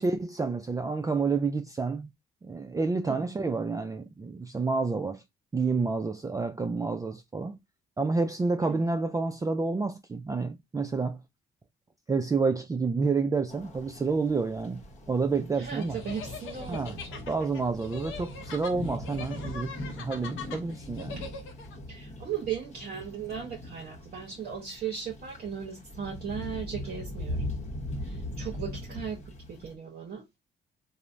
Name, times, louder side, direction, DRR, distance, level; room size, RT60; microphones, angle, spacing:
voice 1, 0.0-2.1 2.4-5.2 5.5-7.6 8.0-11.2 12.1-16.0 16.7-17.0 17.3-21.2, right 4 dB, 15° right, 0.3 m, -29 dB
sound 1, 13.5-29.8, left 1 dB, 35° left, 0.9 m, -40 dB
voice 2, 15.6-17.2 21.2-21.3 21.9-27.5 28.0-30.3, right 7 dB, 50° right, 0.8 m, -37 dB
sound 2, 15.7-21.8, left 5 dB, 85° left, 0.7 m, -42 dB
3.2 x 2.1 x 2.5 m
cardioid pair, 90°, 20 cm